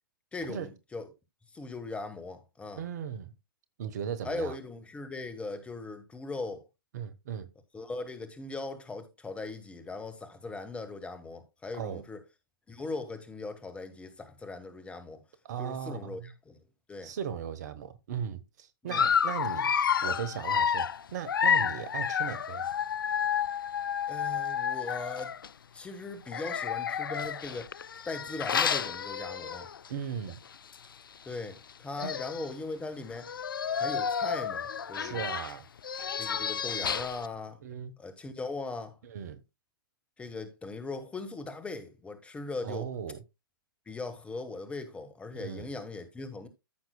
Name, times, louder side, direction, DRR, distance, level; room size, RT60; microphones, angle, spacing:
voice 1, 0.3-1.1 1.5-2.8 4.2-6.7 7.7-12.2 12.7-15.2 15.6-17.1 18.8-19.1 24.1-25.3 25.7-27.7 28.1-29.7 31.2-33.3 33.7-35.2 36.2-37.6 38.0-39.0 40.2-42.9 43.9-46.5, left 3 dB, 10° left, 1.4 m, -39 dB
voice 2, 2.8-3.3 3.8-4.6 6.9-7.5 11.7-12.0 15.4-16.3 17.0-19.7 20.0-22.8 29.9-30.4 32.0-32.2 35.0-35.7 37.6-37.9 39.0-39.4 42.6-43.2 45.3-45.7, right 8 dB, 50° right, 1.1 m, -37 dB
Dog, 18.9-25.5 26.3-29.9 30.3-30.5 30.7-30.8 31.7-31.8 32.0-32.5 33.2-37.3, left 7 dB, 70° left, 0.4 m, -30 dB
14.0 x 5.9 x 2.3 m
figure-of-eight pair, 120°, 12 cm